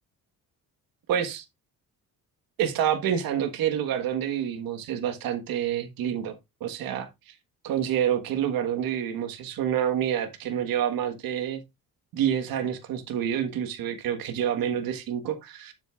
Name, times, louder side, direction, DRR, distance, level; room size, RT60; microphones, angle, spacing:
voice 1, 1.1-1.4 2.6-7.1 7.6-11.6 12.1-15.7, right 9 dB, 75° right, 1.6 m, -28 dB
9.3 x 7.7 x 2.5 m
cardioid pair, 125°, 35 cm